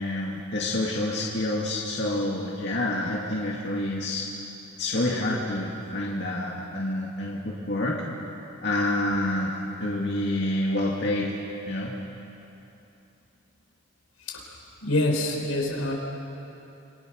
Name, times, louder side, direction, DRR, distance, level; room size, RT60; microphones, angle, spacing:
voice 1, 0.0-4.2 4.8-8.0 8.6-9.5 9.8-11.3 11.7-11.9, left 1 dB, 55° left, -4 dB, 2.4 m, -28 dB
voice 2, 14.8-15.9, left 1 dB, 85° left, 0 dB, 5.0 m, -26 dB
27.5 x 25.0 x 6.5 m, 2.8 s
head